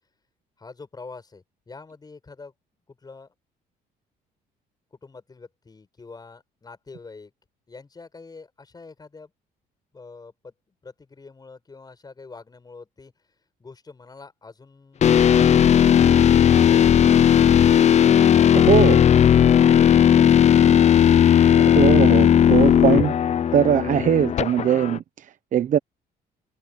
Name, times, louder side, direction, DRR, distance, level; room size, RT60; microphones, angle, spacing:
voice 1, 0.6-2.5 2.9-3.3 5.0-7.3 7.7-9.3 9.9-10.5 10.8-13.1 13.6-16.2 16.7-16.9, left 4 dB, 25° left, 7.6 m, -44 dB
sound 1, 15.0-25.0, left 9 dB, 40° left, 0.7 m, -16 dB
voice 2, 18.7-19.0 21.7-23.2 23.5-25.8, right 10 dB, 50° right, 0.8 m, -21 dB
cardioid pair, 110°, 17 cm